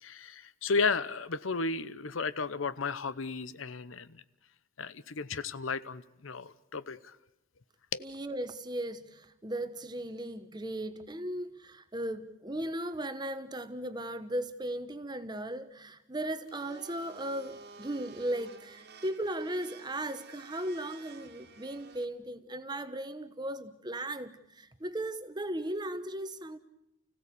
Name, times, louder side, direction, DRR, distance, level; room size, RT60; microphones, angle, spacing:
voice 1, 0.0-4.2 4.8-7.2 7.9-8.0, left 4 dB, 90° left, 0.9 m, -34 dB
voice 2, 8.0-26.6, right 1 dB, 20° right, 1.1 m, -37 dB
Domestic sounds home sounds, 16.5-22.0, right 4 dB, 55° right, 2.0 m, -52 dB
29.5 x 16.5 x 8.4 m
head